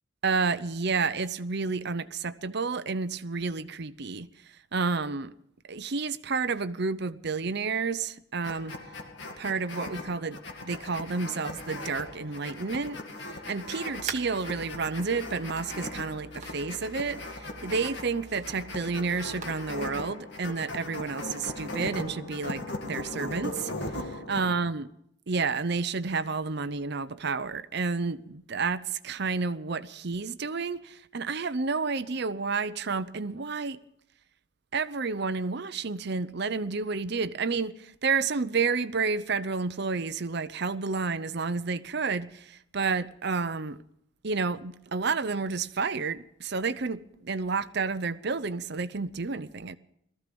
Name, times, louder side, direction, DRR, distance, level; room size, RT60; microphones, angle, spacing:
voice 1, 0.2-4.3 4.7-5.3 5.7-8.8 9.4-24.9 25.3-33.8 34.7-43.8 44.2-49.8, right 4 dB, 55° right, 0.7 m, -30 dB
sound 1, 8.4-24.4, left 1 dB, 60° left, 2.1 m, -39 dB
sound 2, 13.9-20.1, right 5 dB, 35° right, 1.5 m, -45 dB
19.0 x 14.5 x 5.3 m
head